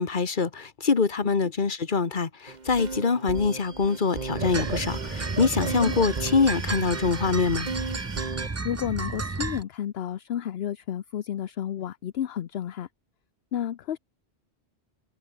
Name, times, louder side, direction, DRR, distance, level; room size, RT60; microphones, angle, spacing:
voice 1, 0.0-7.7, left 5 dB, 45° left, 1.6 m, -24 dB
sound 1, 2.5-8.5, right 4 dB, 40° right, 1.6 m, -35 dB
sound 2, 4.3-9.6, right 3 dB, 20° right, 0.4 m, -32 dB
voice 2, 8.6-12.9 13.5-14.0, left 10 dB, 70° left, 0.9 m, -31 dB
omnidirectional pair, 1.1 m